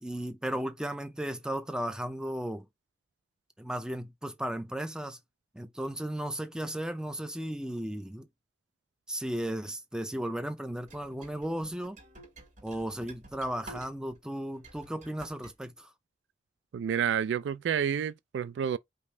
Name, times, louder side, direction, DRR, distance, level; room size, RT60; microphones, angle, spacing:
voice 1, 0.0-2.6 3.6-5.2 5.5-8.3 9.1-12.0 12.6-15.9, right 1 dB, 5° right, 0.4 m, -35 dB
sound 1, 10.9-14.2 14.5-15.5, right 2 dB, 40° right, 1.8 m, -50 dB
voice 2, 16.7-18.8, right 8 dB, 70° right, 0.3 m, -29 dB
5.1 x 2.7 x 3.2 m
head